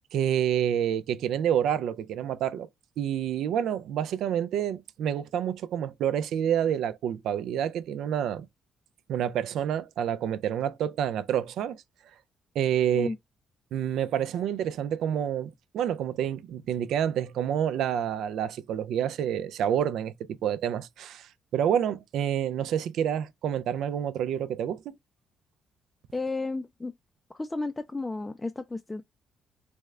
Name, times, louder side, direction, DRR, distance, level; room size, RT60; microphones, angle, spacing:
voice 1, 0.1-2.7 3.0-8.5 9.1-11.8 12.6-13.1 13.7-20.1 20.4-24.9, right 9 dB, 80° right, 0.3 m, -28 dB
voice 2, 26.1-26.9 27.3-29.0, left 3 dB, 20° left, 0.3 m, -33 dB
3.5 x 2.1 x 3.1 m
cardioid pair, 90°, 0 cm